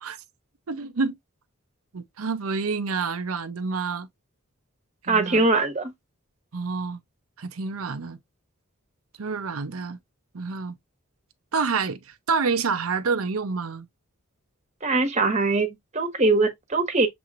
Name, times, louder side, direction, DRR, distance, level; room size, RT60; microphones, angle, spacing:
voice 1, 0.7-1.2 1.9-4.1 5.1-5.5 6.5-7.0 7.4-8.2 9.2-10.0 10.3-10.8 11.5-13.9, right 4 dB, 75° right, 0.6 m, -28 dB
voice 2, 5.1-5.9 14.8-17.1, right 3 dB, 30° right, 1.2 m, -22 dB
6.9 x 3.0 x 2.5 m
head